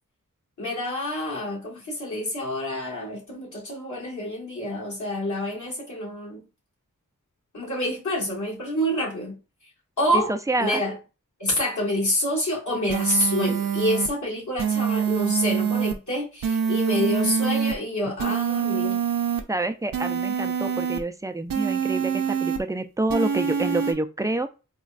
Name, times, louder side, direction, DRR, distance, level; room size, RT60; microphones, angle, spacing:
voice 1, 0.6-6.4 7.5-9.3 10.0-10.3 10.6-10.9 11.4-19.0, left 1 dB, 60° left, 1.5 m, -27 dB
voice 2, 10.3-10.8 19.5-24.5, right 2 dB, 10° right, 0.3 m, -27 dB
sound 1, 12.9-14.1 14.6-15.9 16.4-17.7 18.2-19.4 19.9-21.0 21.5-22.6 23.1-23.9, right 7 dB, 85° right, 0.5 m, -25 dB
4.1 x 2.2 x 2.4 m
wide cardioid pair, 55°, 33 cm